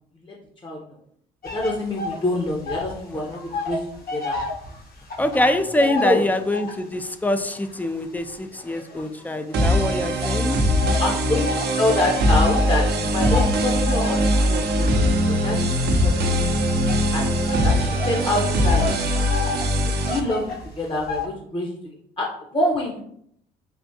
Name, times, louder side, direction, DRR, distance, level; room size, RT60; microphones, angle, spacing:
sound 1, 1.4-3.0 3.3-6.9 7.5-9.6 10.2-21.3, left 3 dB, 50° left, 1.0 m, -32 dB
voice 1, 1.5-3.8 4.1-4.4 5.4-5.5 5.8-6.2 11.0-11.5 11.8-15.7 16.0-16.4 17.1-17.4 17.6-18.9 19.1-19.4 20.1-21.8 22.2-22.3 22.5-23.0, left 2 dB, 25° left, -1 dB, 0.7 m, -26 dB
voice 2, 5.2-10.6, left 1 dB, 10° left, 9 dB, 0.3 m, -24 dB
sound 2, 9.5-20.2, equal, 55° right, 0.6 m, -21 dB
3.5 x 2.4 x 2.7 m, 0.68 s
hypercardioid pair, 55°, 20 cm